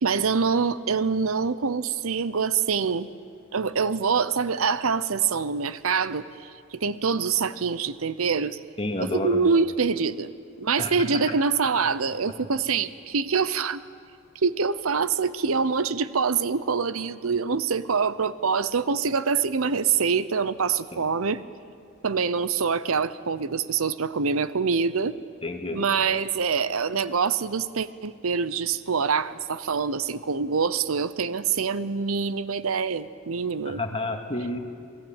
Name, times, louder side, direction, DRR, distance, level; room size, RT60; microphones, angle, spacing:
voice 1, 0.0-3.1 3.5-8.6 9.0-10.3 10.6-13.8 14.4-21.4 22.0-25.2 25.7-33.8, right 5 dB, 80° right, 15 dB, 0.8 m, -25 dB
voice 2, 8.8-9.4 10.8-10.9 11.3-11.4 20.9-21.0 25.4-25.8 33.7-34.6, left 2 dB, 25° left, 3 dB, 2.2 m, -30 dB
27.5 x 19.0 x 8.9 m, 2.3 s
head